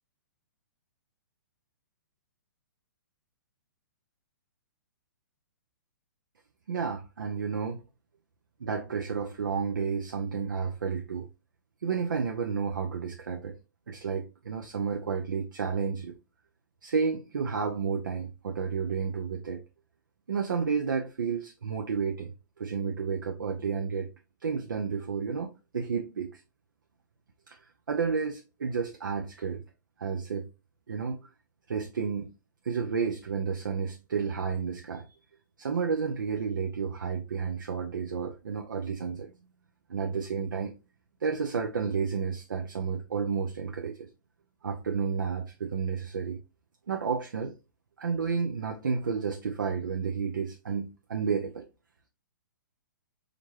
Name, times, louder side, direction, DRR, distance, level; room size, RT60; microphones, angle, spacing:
voice 1, 6.7-7.8 8.6-11.3 11.8-13.6 13.9-16.1 16.8-19.6 20.3-24.1 24.4-26.4 27.5-27.6 27.9-29.6 30.0-30.5 30.9-31.3 31.7-32.3 32.6-35.1 35.6-39.3 39.9-40.7 41.2-44.1 44.6-46.4 46.9-47.5 48.0-51.7, right 6 dB, 85° right, 0.6 m, -31 dB
4.5 x 2.6 x 2.8 m
hypercardioid pair, 135°, 10 cm